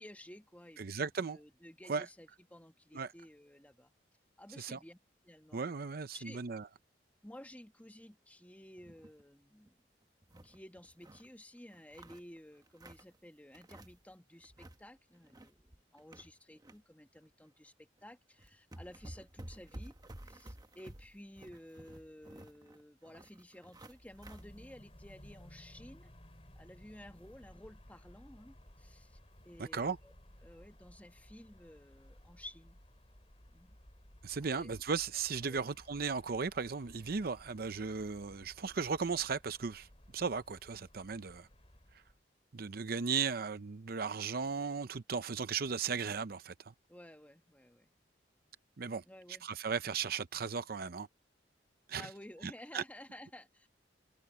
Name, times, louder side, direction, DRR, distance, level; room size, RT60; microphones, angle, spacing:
voice 1, 0.0-3.9 4.4-5.0 5.2-5.8 6.1-6.4 7.2-9.8 10.4-19.9 20.2-26.1 26.6-29.2 29.4-30.1 30.4-32.8 33.5-33.8 34.4-34.7 35.5-35.7 46.9-47.9 49.1-49.5 52.0-53.7, left 1 dB, 10° left, 1.9 m, -54 dB
voice 2, 0.8-1.4 1.9-2.1 2.9-3.1 4.6-4.8 5.5-6.6 29.6-30.0 34.2-39.9 40.1-41.5 42.5-46.7 48.8-49.0 49.4-51.1 51.9-52.1 52.7-52.8, right 5 dB, 55° right, 0.6 m, -36 dB
sound 1, 8.8-9.2 9.6-9.7 10.0-11.3 11.7-13.2 13.5-14.1 14.4-14.8 15.1-16.8 17.2-17.3 18.0-18.1 18.4-24.5, right 1 dB, 20° right, 1.1 m, -53 dB
sound 2, 23.9-42.2, equal, 35° left, 4.1 m, -58 dB
head